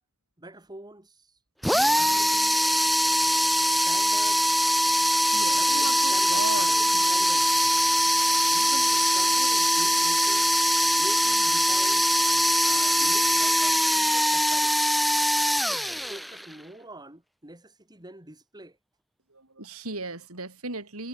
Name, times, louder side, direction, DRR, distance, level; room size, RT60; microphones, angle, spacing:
voice 1, 0.4-1.4 1.9-2.6 3.3-4.7 5.5-7.6 8.5-10.5 10.9-12.1 12.6-14.9 15.7-18.8, right 1 dB, 20° right, 2.8 m, -45 dB
sound 1, 1.6-16.5, equal, ahead, 1.2 m, -22 dB
voice 2, 5.3-7.3 19.3-21.1, right 3 dB, 70° right, 5.0 m, -37 dB
head